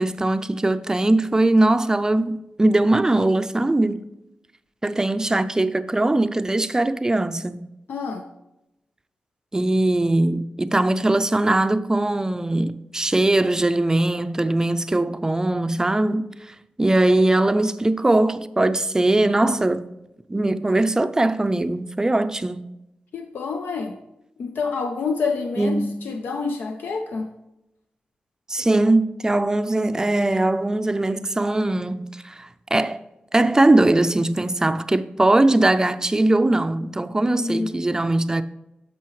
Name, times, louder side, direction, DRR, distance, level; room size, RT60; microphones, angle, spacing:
voice 1, 0.0-4.0 4.8-7.6 9.5-20.0 20.3-22.7 25.6-25.9 28.5-33.0 33.3-38.4, right 2 dB, 20° right, 0.4 m, -21 dB
voice 2, 7.9-8.3 23.1-24.0 24.4-27.3 37.2-37.8, left 4 dB, 90° left, 0.6 m, -28 dB
10.0 x 6.9 x 3.1 m
wide cardioid pair, 95°, 3 cm